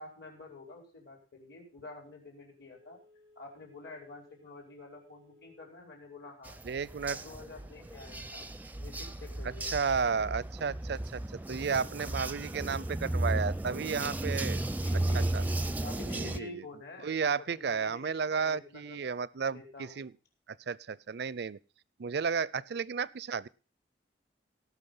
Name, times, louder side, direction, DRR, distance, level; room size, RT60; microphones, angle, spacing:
voice 1, 0.0-3.0 3.3-6.6 7.1-8.5 8.8-9.8 14.8-19.0 19.5-20.1, left 2 dB, 70° left, 1 dB, 5.0 m, -48 dB
Telephone, 2.7-5.8 6.2-6.3, left 2 dB, 90° left, 5.0 m, -62 dB
sound 1, 6.5-16.4, right 1 dB, 10° right, 0.5 m, -34 dB
voice 2, 6.6-7.2 9.7-14.6 15.1-15.4 16.1-16.5 17.0-20.1 20.7-21.6 22.0-23.5, right 5 dB, 65° right, 22 dB, 0.5 m, -33 dB
18.0 x 6.2 x 5.6 m, 0.34 s
head